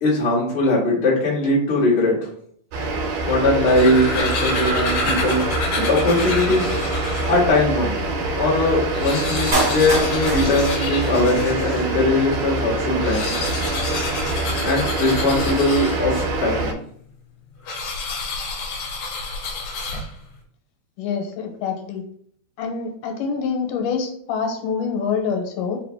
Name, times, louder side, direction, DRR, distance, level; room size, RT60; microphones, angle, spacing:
voice 1, 0.0-2.3 2.8-2.9 3.2-5.4 5.9-6.8 7.3-8.0 8.3-13.4 14.6-16.7, left 2 dB, 35° left, -6 dB, 1.0 m, -20 dB
sound 1, 2.7-16.7, right 2 dB, 85° right, 2.3 m, -25 dB
sound 2, 3.4-7.5 8.1-8.2 8.4-8.5 8.8-11.9 12.9-16.3 17.6-20.3, left 3 dB, 70° left, 2.0 m, -29 dB
Clapping, 9.5-11.5 11.8-11.9, right 1 dB, 45° right, 0.8 m, -25 dB
voice 2, 21.0-22.0 22.6-25.8, left 6 dB, 85° left, 4 dB, 2.3 m, -26 dB
4.9 x 2.6 x 3.3 m, 0.63 s
omnidirectional pair, 3.7 m